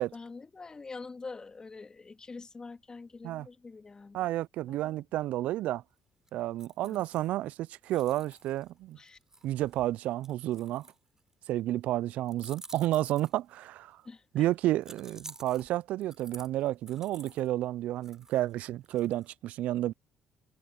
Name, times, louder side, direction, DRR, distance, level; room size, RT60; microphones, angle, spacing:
voice 1, 0.1-4.2 4.7-5.0 6.8-7.0 9.0-9.2 14.0-14.4, left 4 dB, 30° left, 2.8 m, -45 dB
voice 2, 4.1-5.8 6.3-9.0 9.4-10.9 11.5-14.0 14.3-19.9, right 14 dB, 70° right, 0.5 m, -31 dB
sound 1, 6.3-7.5 7.9-11.3 12.3-13.7 14.8-17.5 18.0-19.3, right 2 dB, 20° right, 4.8 m, -51 dB
hypercardioid pair, 50°, 2 cm